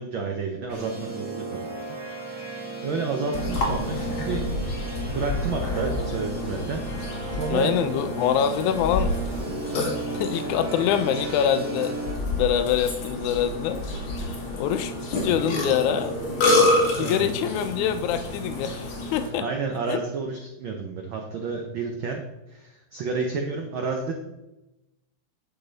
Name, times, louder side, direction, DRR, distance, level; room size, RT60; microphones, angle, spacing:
voice 1, 0.0-1.4 2.3-4.5 4.7-6.8 7.3-7.7 17.0-17.3 19.2-22.2 22.5-24.1, right 4 dB, 80° right, 3 dB, 1.1 m, -30 dB
sound 1, 0.7-12.1, right 3 dB, 35° right, 4.0 m, -35 dB
Burping eructation, 3.3-19.3, left 2 dB, 50° left, 2.4 m, -28 dB
voice 2, 7.5-9.1 9.5-12.0 12.4-13.8 14.5-16.1 17.0-19.5 19.9-20.0, left 9 dB, 85° left, 10 dB, 2.0 m, -25 dB
9.5 x 6.8 x 3.9 m, 0.98 s
omnidirectional pair, 3.3 m